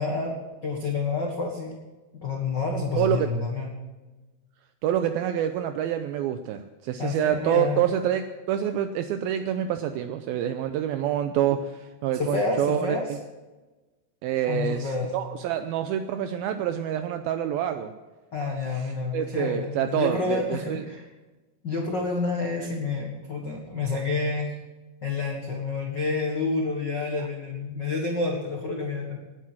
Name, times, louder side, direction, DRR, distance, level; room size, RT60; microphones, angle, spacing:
voice 1, 0.0-1.8 2.1-3.7 7.0-7.9 12.2-13.2 14.5-15.1 18.3-21.0 21.6-24.5 25.0-29.2, left 3 dB, 90° left, 0 dB, 0.9 m, -29 dB
voice 2, 3.0-3.3 4.8-13.0 14.2-17.9 18.7-18.8 19.1-20.8, right 10 dB, 80° right, 8 dB, 2.2 m, -27 dB
18.0 x 9.5 x 6.1 m, 1.2 s
omnidirectional pair, 4.8 m